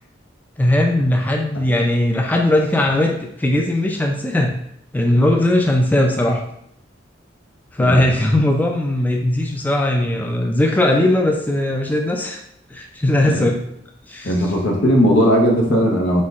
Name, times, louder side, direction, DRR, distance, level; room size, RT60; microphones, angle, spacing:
voice 1, 0.6-4.6 4.9-6.4 7.7-12.4 12.7-13.6 14.1-14.5, left 1 dB, 10° left, 1 dB, 0.4 m, -18 dB
voice 2, 14.2-16.2, equal, 85° left, 0 dB, 1.0 m, -17 dB
4.3 x 3.9 x 2.4 m, 0.72 s
head